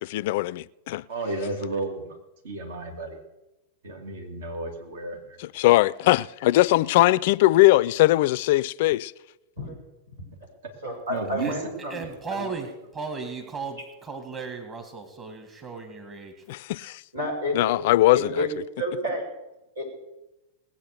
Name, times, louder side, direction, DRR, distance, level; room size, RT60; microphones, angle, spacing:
voice 1, 0.0-1.0 5.5-9.1 16.5-17.0 17.5-18.5, left 17 dB, 55° left, 0.4 m, -20 dB
voice 2, 1.1-2.2 2.4-3.2 3.8-5.4 10.6-10.7 11.1-11.6, right 2 dB, 70° right, 2.4 m, -32 dB
voice 3, 10.8-12.0 12.3-12.5 17.1-17.8 18.1-18.5 18.8-19.2 19.8-19.9, left 1 dB, 90° right, 6.1 m, -30 dB
voice 4, 11.9-16.3, right 4 dB, 30° right, 2.3 m, -36 dB
19.5 x 8.6 x 6.8 m
hypercardioid pair, 95°, 0 cm